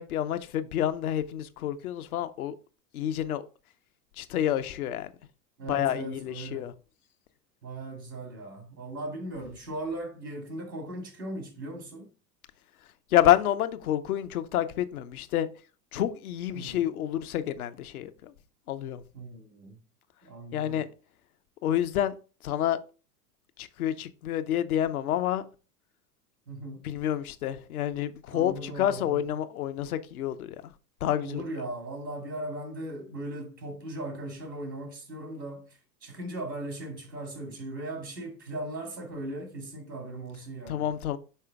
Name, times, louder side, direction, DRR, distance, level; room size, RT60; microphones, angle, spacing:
voice 1, 0.0-2.5 2.9-3.4 4.2-5.1 5.7-6.7 13.1-15.5 15.9-18.3 18.7-19.0 20.5-20.9 21.6-22.1 22.4-22.8 23.6-25.4 26.8-30.6 31.0-31.4 40.7-41.2, left 11 dB, 60° left, 0.8 m, -28 dB
voice 2, 5.6-6.7 7.6-12.1 16.5-16.9 19.1-19.8 20.2-20.9 26.5-26.9 28.3-29.3 31.2-40.9, right 1 dB, 90° right, 2.0 m, -38 dB
5.6 x 4.9 x 3.4 m
figure-of-eight pair, 90°, 49 cm